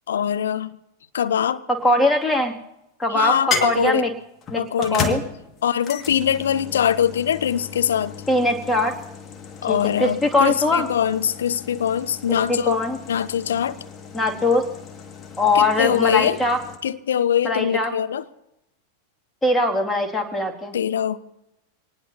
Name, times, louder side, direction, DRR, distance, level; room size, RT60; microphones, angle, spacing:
voice 1, 0.1-0.7 1.1-1.6 3.1-4.1 4.6-5.2 5.6-8.1 9.6-12.8 13.1-13.8 15.5-16.4 16.8-18.2 20.7-21.2, left 9 dB, 65° left, 0.8 m, -22 dB
voice 2, 1.7-2.5 3.0-4.1 4.5-5.2 8.3-8.9 9.7-10.9 12.3-13.0 14.1-14.6 15.4-16.6 17.4-17.9 19.4-20.8, left 2 dB, 10° left, 2.3 m, -21 dB
sound 1, 1.8-2.4 3.5-16.8, left 6 dB, 25° left, 2.0 m, -35 dB
25.0 x 19.5 x 2.8 m
figure-of-eight pair, 90°, 0 cm